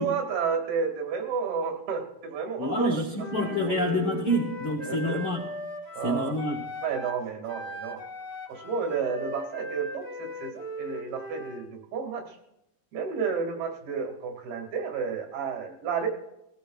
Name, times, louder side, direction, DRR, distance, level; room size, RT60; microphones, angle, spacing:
voice 1, 0.0-3.0 3.4-3.8 4.9-5.2 5.9-6.4 6.8-8.0 8.5-12.4 12.9-16.1, right 6 dB, 80° right, 3 dB, 4.0 m, -31 dB
voice 2, 2.6-5.4 6.0-6.6, left 1 dB, 75° left, 1 dB, 1.2 m, -27 dB
Wind instrument woodwind instrument, 3.2-7.2 7.5-11.7, equal, 5° right, 1.2 m, -38 dB
21.0 x 15.5 x 2.4 m, 0.86 s
omnidirectional pair, 4.3 m